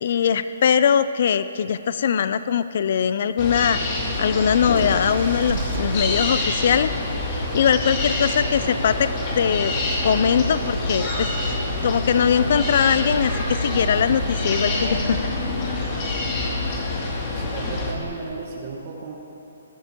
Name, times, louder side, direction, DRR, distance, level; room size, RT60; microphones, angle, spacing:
voice 1, 0.0-3.8 4.2-6.9 7.3-9.1 9.4-9.7 10.0-11.3 11.8-15.2, left 7 dB, 55° left, 13 dB, 0.4 m, -21 dB
sound 1, 3.4-17.9, left 2 dB, 30° left, 2.6 m, -27 dB
Engine starting, 4.7-15.4 18.0-18.1, right 2 dB, 75° right, 1.6 m, -33 dB
voice 2, 16.3-19.1, right 4 dB, 45° right, -1 dB, 1.5 m, -36 dB
22.5 x 11.5 x 3.0 m, 2.9 s
hypercardioid pair, 155°, 0 cm